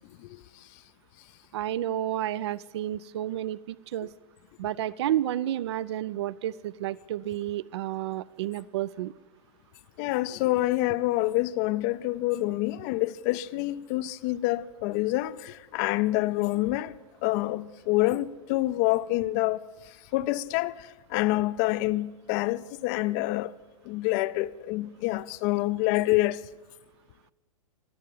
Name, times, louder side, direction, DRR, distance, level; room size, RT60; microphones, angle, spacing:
voice 1, 0.2-0.7 10.0-17.0 17.2-23.5 23.8-26.4, left 17 dB, 30° left, 0.4 m, -27 dB
voice 2, 1.5-4.1 4.6-9.1, right 12 dB, 50° right, 0.4 m, -31 dB
23.5 x 8.2 x 7.3 m
figure-of-eight pair, 105°, 18 cm